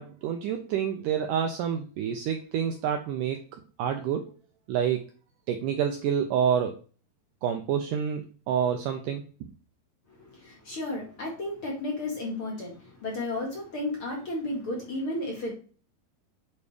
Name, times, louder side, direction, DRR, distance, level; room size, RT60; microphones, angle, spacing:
voice 1, 0.0-3.4 3.8-4.3 4.7-5.1 5.5-6.7 7.4-9.5, right 8 dB, 85° right, 5 dB, 1.9 m, -28 dB
voice 2, 10.3-15.5, left 2 dB, 40° left, -1 dB, 2.3 m, -33 dB
8.7 x 4.1 x 5.0 m, 0.37 s
omnidirectional pair, 4.6 m